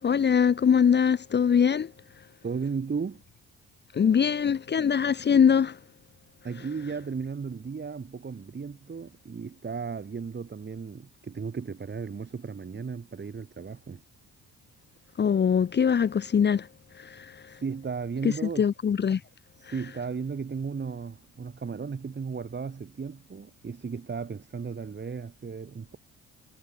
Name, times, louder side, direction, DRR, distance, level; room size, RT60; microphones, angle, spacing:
voice 1, 0.0-1.9 3.9-5.8 15.2-16.7 17.0-17.5 18.4-19.2, left 7 dB, 35° left, 0.8 m, -23 dB
voice 2, 2.4-3.2 6.4-14.0 17.5-18.7 19.6-26.0, right 5 dB, 35° right, 5.1 m, -35 dB
cardioid pair, 90°, 30 cm